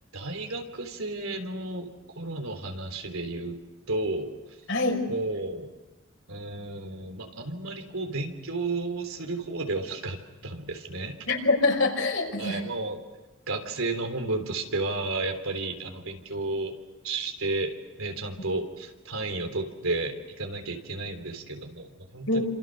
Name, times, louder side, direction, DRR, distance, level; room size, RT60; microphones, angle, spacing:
voice 1, 0.1-3.6 3.9-4.3 5.1-5.7 6.3-11.2 12.4-13.0 13.5-16.7 17.0-17.7 18.0-22.4, right 2 dB, 85° right, 5 dB, 3.6 m, -32 dB
voice 2, 4.7-5.0 11.3-12.6 22.3-22.4, left 2 dB, 65° left, 2 dB, 5.5 m, -24 dB
28.5 x 27.0 x 6.6 m, 1.1 s
head